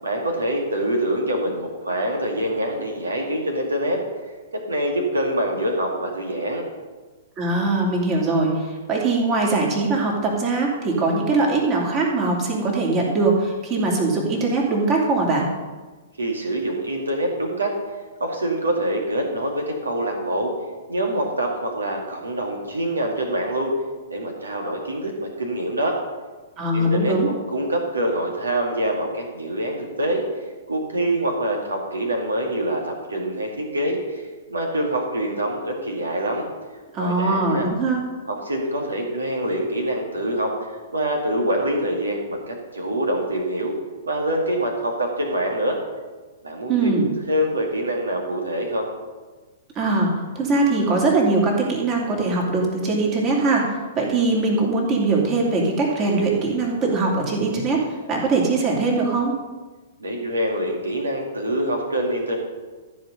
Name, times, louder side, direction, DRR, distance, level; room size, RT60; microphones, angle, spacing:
voice 1, 0.0-4.0 4.5-6.6 16.2-17.7 18.2-20.5 20.9-23.8 24.1-26.0 26.7-30.2 30.7-36.5 37.0-37.7 38.3-43.8 44.0-45.8 46.4-48.9 60.0-62.4, right 1 dB, 75° right, 2 dB, 2.2 m, -25 dB
voice 2, 7.4-8.5 8.9-15.5 26.6-27.3 36.9-38.0 46.7-47.1 49.7-53.6 53.9-57.8 58.1-59.3, right 3 dB, 30° right, -1 dB, 2.8 m, -21 dB
13.5 x 5.2 x 6.6 m, 1.3 s
figure-of-eight pair, 110°, 0 cm